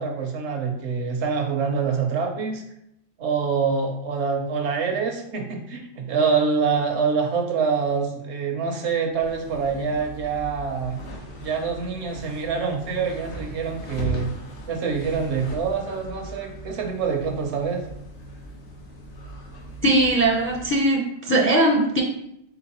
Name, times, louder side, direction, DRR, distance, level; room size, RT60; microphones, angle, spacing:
voice 1, 0.0-2.6 3.2-11.0 11.4-14.3 14.7-17.8, right 5 dB, 75° right, 3 dB, 1.0 m, -25 dB
sound 1, 9.1-20.8, right 1 dB, 75° left, 1.1 m, -39 dB
voice 2, 19.8-22.0, right 1 dB, 15° left, -1 dB, 0.4 m, -20 dB
4.1 x 3.8 x 2.9 m, 0.79 s
omnidirectional pair, 1.2 m